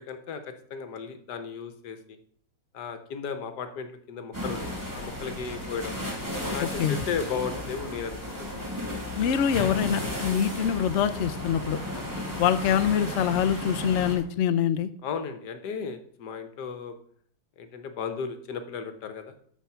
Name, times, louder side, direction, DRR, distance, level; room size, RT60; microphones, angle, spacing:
voice 1, 0.0-2.2 2.7-5.9 6.5-8.5 10.3-10.5 11.9-12.2 15.0-17.0 17.6-19.3, left 6 dB, 65° left, 9 dB, 1.5 m, -35 dB
sound 1, 4.3-14.2, left 1 dB, 10° right, 2.5 m, -34 dB
voice 2, 6.6-7.0 9.1-11.8 12.4-14.9, left 9 dB, 85° left, 10 dB, 0.6 m, -25 dB
13.5 x 4.6 x 5.7 m, 0.63 s
omnidirectional pair, 2.0 m